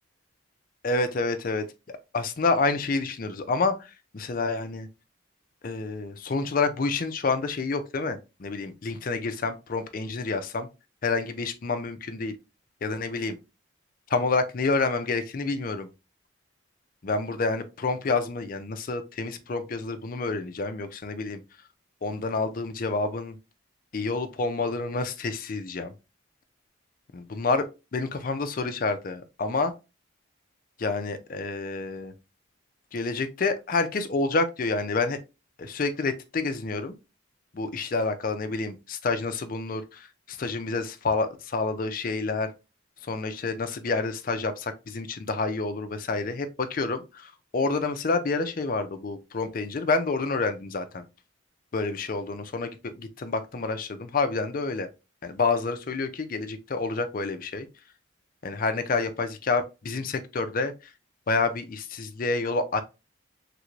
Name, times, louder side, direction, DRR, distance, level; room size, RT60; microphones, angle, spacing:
voice 1, 0.8-4.9 5.6-10.7 11.0-12.3 12.8-13.4 14.1-15.9 17.0-21.4 22.0-23.4 23.9-25.9 27.1-27.7 27.9-29.7 30.8-32.1 32.9-35.2 35.6-36.9 37.5-42.5 43.0-51.0 51.7-54.9 55.2-57.7 58.4-60.9 61.3-62.8, left 3 dB, 45° left, 0.4 m, -28 dB
3.3 x 2.5 x 3.0 m
head